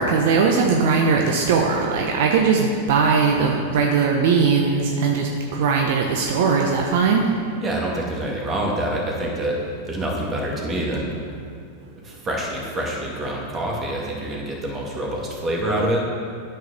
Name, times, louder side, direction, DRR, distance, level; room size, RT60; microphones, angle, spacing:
voice 1, 0.0-7.3, right 5 dB, 65° right, 1 dB, 0.8 m, -19 dB
voice 2, 7.6-9.6 9.8-11.2 12.0-16.0, right 1 dB, 25° right, -2 dB, 2.1 m, -26 dB
9.3 x 4.7 x 6.4 m, 2.2 s
hypercardioid pair, 110°, 0 cm